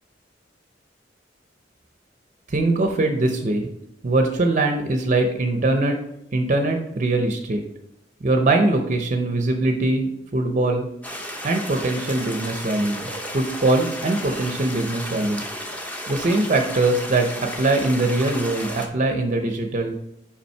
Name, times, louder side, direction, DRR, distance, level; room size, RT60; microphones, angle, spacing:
voice 1, 2.5-3.7 4.0-6.0 6.3-7.6 8.2-10.9 11.4-15.4 16.1-19.9, right 2 dB, 40° right, 4 dB, 0.6 m, -22 dB
sound 1, 11.0-18.9, equal, 10° left, 0.7 m, -33 dB
5.6 x 5.0 x 4.4 m, 0.82 s
head